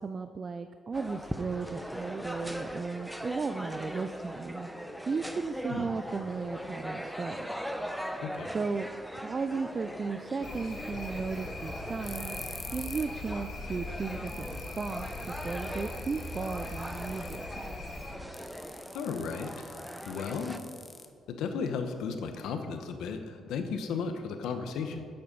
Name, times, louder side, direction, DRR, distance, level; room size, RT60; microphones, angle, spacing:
voice 1, 0.0-4.7 5.1-7.5 8.5-8.9 9.2-17.8, right 4 dB, 35° right, 9 dB, 0.4 m, -35 dB
sound 1, 0.9-20.6, equal, ahead, 0.7 m, -40 dB
sound 2, 10.4-18.2, left 2 dB, 55° left, 2.4 m, -41 dB
sound 3, 12.0-13.2 13.5-13.6 14.0-14.1 14.3-17.5 18.3-21.5, left 3 dB, 25° left, 1.0 m, -47 dB
voice 2, 18.9-20.6 21.3-25.1, left 5 dB, 85° left, 7 dB, 1.0 m, -35 dB
11.0 x 7.8 x 5.3 m, 2.3 s
cardioid pair, 90°, 0 cm